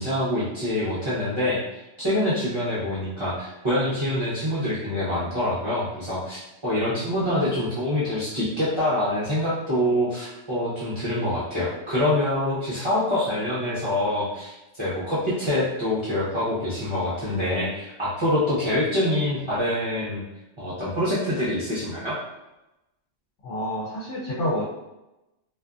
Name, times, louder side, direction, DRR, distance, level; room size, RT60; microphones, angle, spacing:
voice 1, 0.0-20.2 20.6-22.2, left 1 dB, 30° right, -11 dB, 0.6 m, -25 dB
voice 2, 23.4-24.6, left 1 dB, 80° left, -4 dB, 0.9 m, -28 dB
2.5 x 2.5 x 2.3 m, 0.97 s
omnidirectional pair, 1.2 m